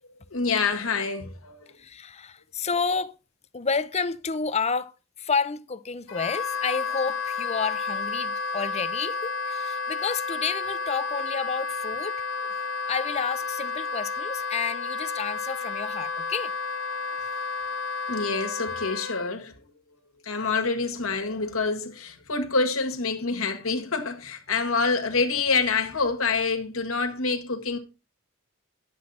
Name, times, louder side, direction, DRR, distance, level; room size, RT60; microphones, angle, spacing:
voice 1, 0.3-1.7 18.1-19.5 20.2-27.8, left 4 dB, 85° left, 1.7 m, -26 dB
voice 2, 1.8-3.1 3.5-12.5 12.9-16.5 17.1-17.2, left 5 dB, 30° left, 0.6 m, -30 dB
Wind instrument woodwind instrument, 6.1-19.3, left 4 dB, 70° left, 1.1 m, -31 dB
11.0 x 7.8 x 4.2 m
head